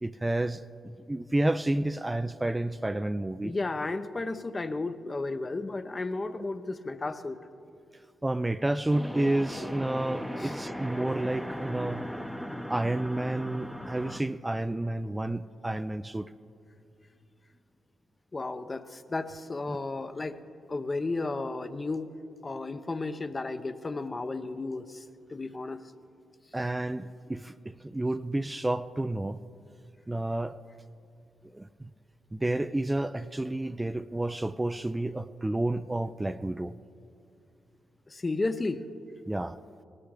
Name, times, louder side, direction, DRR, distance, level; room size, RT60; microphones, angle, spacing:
voice 1, 0.0-3.5 8.2-12.0 12.7-16.3 19.7-19.8 26.5-29.4 30.1-30.6 31.5-31.9 32.3-36.7 39.3-39.6, right 1 dB, 20° right, 12 dB, 0.4 m, -30 dB
voice 2, 3.4-7.4 10.4-10.6 18.3-20.4 20.7-22.1 22.4-25.8 38.1-38.8, left 3 dB, 35° left, 10 dB, 0.8 m, -33 dB
sound 1, 8.9-14.2, equal, ahead, 0.8 m, -37 dB
19.0 x 13.5 x 3.7 m, 2.5 s
hypercardioid pair, 40°, 0 cm